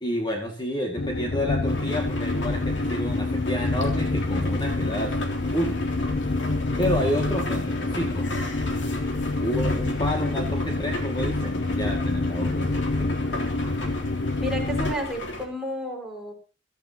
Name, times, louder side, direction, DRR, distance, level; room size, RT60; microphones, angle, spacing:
voice 1, 0.0-5.2 5.5-5.8 6.8-8.4 9.4-13.2, equal, 25° left, 1 dB, 2.2 m, -30 dB
sound 1, 1.0-14.9, left 2 dB, 55° left, 0.6 m, -27 dB
sound 2, 1.7-15.5, left 1 dB, 75° left, 3.5 m, -35 dB
voice 2, 14.4-16.3, equal, 5° right, -1 dB, 5.2 m, -31 dB
22.5 x 14.0 x 3.0 m, 0.32 s
head